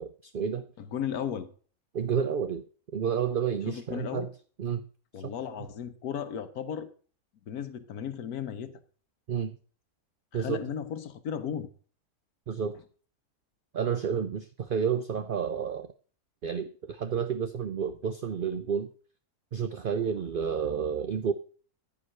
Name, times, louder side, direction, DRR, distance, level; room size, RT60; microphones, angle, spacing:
voice 1, 0.0-0.7 1.9-2.6 2.9-4.3 4.6-4.8 5.2-5.3 9.3-9.6 10.3-10.6 12.5-12.8 13.7-15.9 16.4-18.9 19.5-21.3, right 7 dB, 60° right, 9 dB, 0.5 m, -30 dB
voice 2, 0.8-1.5 3.7-4.3 5.1-6.9 7.5-8.7 10.3-11.7, left 8 dB, 75° left, 11 dB, 1.4 m, -35 dB
14.5 x 5.0 x 6.4 m, 0.43 s
omnidirectional pair, 1.6 m